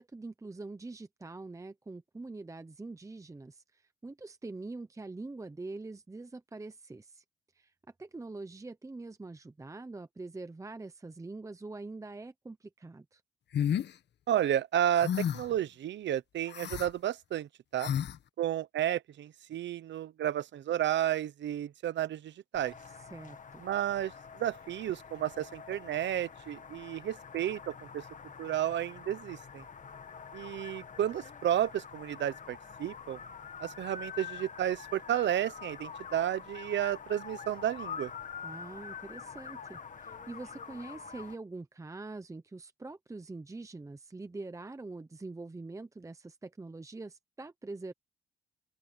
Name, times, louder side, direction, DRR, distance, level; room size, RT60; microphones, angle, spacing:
voice 1, 0.0-7.2 7.6-7.7 8.0-13.2 23.0-23.6 38.4-47.9, right 3 dB, 15° right, 0.9 m, -44 dB
sound 1, 13.5-13.9 15.0-15.5 16.5-16.9 17.8-18.2, left 9 dB, 60° left, 1.3 m, -31 dB
voice 2, 14.3-17.9 18.4-22.7 23.6-28.0 28.4-29.6 30.3-33.2 33.6-38.1, right 11 dB, 65° right, 1.0 m, -32 dB
sound 2, 22.5-41.3, left 6 dB, 40° left, 1.8 m, -46 dB
open air
cardioid pair, 90°, 20 cm